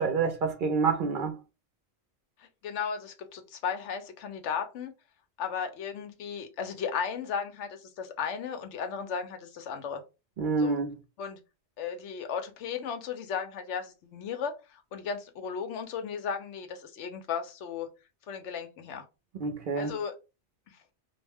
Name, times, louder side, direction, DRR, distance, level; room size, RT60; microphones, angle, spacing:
voice 1, 0.0-1.4 10.4-11.0 19.4-19.9, right 4 dB, 60° right, 0.6 m, -27 dB
voice 2, 2.4-4.9 5.4-10.0 10.6-10.8 11.2-11.4 11.8-17.9 18.3-19.1 19.7-20.1 20.7-20.8, left 6 dB, 85° left, 0.9 m, -35 dB
2.4 x 2.1 x 3.3 m
omnidirectional pair, 1.2 m